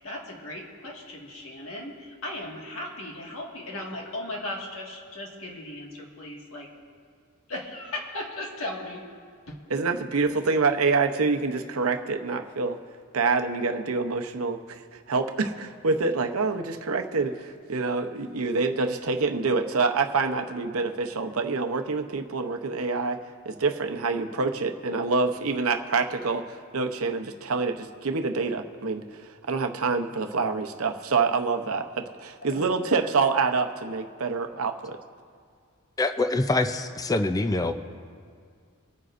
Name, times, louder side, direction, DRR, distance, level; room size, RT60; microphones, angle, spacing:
voice 1, 0.0-6.7 7.5-9.0 9.5-9.6 32.5-32.7, left 1 dB, 70° left, -1 dB, 1.9 m, -37 dB
voice 2, 9.7-12.8 13.1-23.2 23.5-29.0 29.5-35.0, right 4 dB, 85° right, 6 dB, 0.8 m, -26 dB
voice 3, 36.0-37.7, left 2 dB, 15° left, 8 dB, 0.4 m, -25 dB
26.0 x 9.3 x 2.6 m, 2.1 s
head